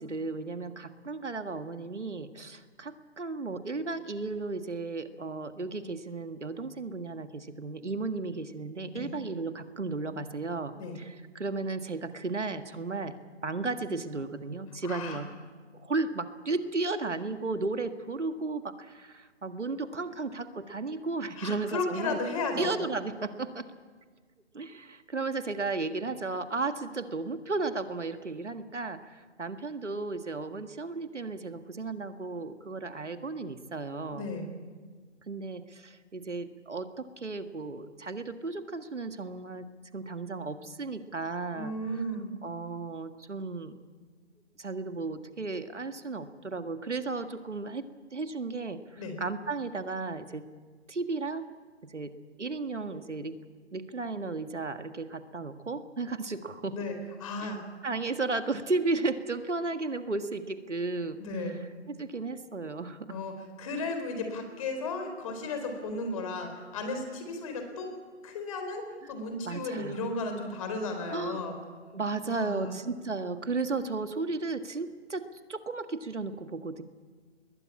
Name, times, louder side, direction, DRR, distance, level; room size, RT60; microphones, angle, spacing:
voice 1, 0.0-13.1 13.4-15.3 15.7-22.2 22.6-23.7 24.5-34.3 35.3-39.7 39.9-42.0 42.4-43.7 44.6-47.8 48.1-50.5 50.9-51.5 51.8-52.1 52.4-53.4 53.7-56.8 57.4-61.6 61.9-63.2 69.5-70.0 71.1-71.4 71.9-76.8, right 3 dB, 85° right, 9 dB, 1.8 m, -34 dB
voice 2, 14.8-15.2 21.4-22.8 34.1-34.5 41.5-42.3 49.0-49.2 56.7-57.6 61.2-61.5 63.1-63.3 63.6-67.9 68.2-71.6 72.3-72.7, left 2 dB, 30° left, 6 dB, 4.1 m, -34 dB
22.0 x 21.0 x 8.6 m, 1.5 s
figure-of-eight pair, 150°, 35 cm